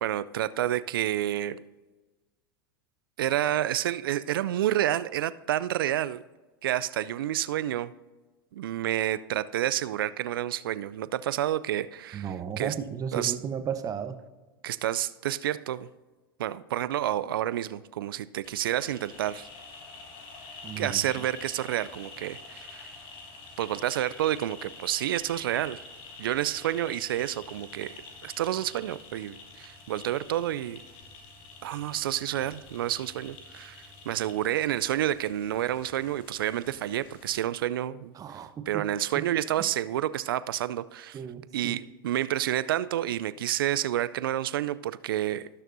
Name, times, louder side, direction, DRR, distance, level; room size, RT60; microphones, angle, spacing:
voice 1, 0.0-1.6 3.2-6.2 6.6-7.9 8.5-12.7 13.1-13.3 14.6-15.9 16.4-19.5 20.8-22.9 23.6-25.8 26.2-30.8 31.6-33.8 34.1-38.4 38.7-41.2 41.5-45.5, right 12 dB, 70° right, 16 dB, 0.4 m, -29 dB
voice 2, 12.1-14.2 20.6-21.0 38.1-38.8 39.1-39.2 41.1-41.8, right 8 dB, 30° right, 9 dB, 0.9 m, -34 dB
sound 1, 18.4-37.5, left 3 dB, 45° left, 1.6 m, -48 dB
18.0 x 6.6 x 2.6 m, 1.2 s
hypercardioid pair, 90°, 12 cm